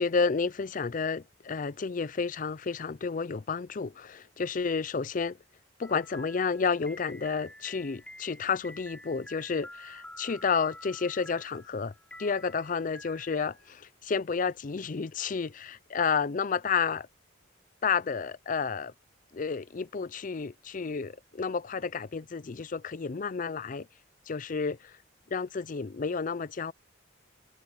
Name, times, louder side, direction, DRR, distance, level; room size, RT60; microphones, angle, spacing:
voice 1, 0.0-5.4 5.8-11.9 12.2-17.1 17.8-18.9 19.3-23.9 24.3-25.0 25.3-26.7, left 5 dB, 45° left, 0.5 m, -31 dB
sound 1, 5.8-13.7, left 1 dB, 5° left, 3.3 m, -49 dB
open air
head